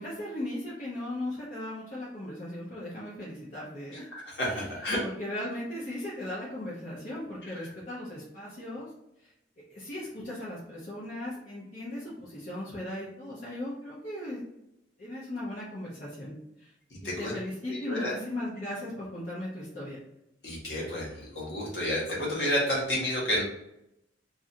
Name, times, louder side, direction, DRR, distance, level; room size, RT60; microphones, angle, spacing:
voice 1, 0.0-4.1 4.5-8.9 9.2-9.3 9.7-14.4 15.0-16.7 17.0-20.0, left 1 dB, 40° left, -8 dB, 0.7 m, -37 dB
voice 2, 4.1-5.0 7.4-7.5 17.0-17.3 17.7-18.1 20.4-23.4, left 1 dB, 60° left, -5 dB, 1.2 m, -30 dB
3.1 x 2.5 x 2.7 m, 0.84 s
head